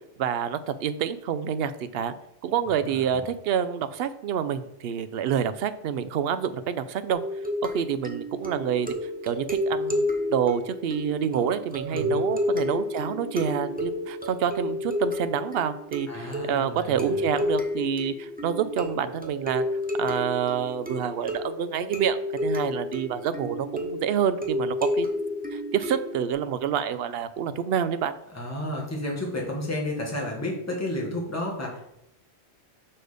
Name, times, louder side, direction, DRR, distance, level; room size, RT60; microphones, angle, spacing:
voice 1, 0.2-2.1 2.4-7.2 7.6-8.9 9.2-19.6 20.0-25.1 25.5-28.1, right 8 dB, 65° right, 12 dB, 0.8 m, -28 dB
sound 1, 7.1-26.3, left 1 dB, 10° right, 0.9 m, -31 dB
voice 2, 11.9-12.2 16.1-17.3 28.3-31.9, left 1 dB, 15° left, -2 dB, 1.5 m, -32 dB
6.5 x 4.3 x 4.9 m, 0.82 s
omnidirectional pair, 1.1 m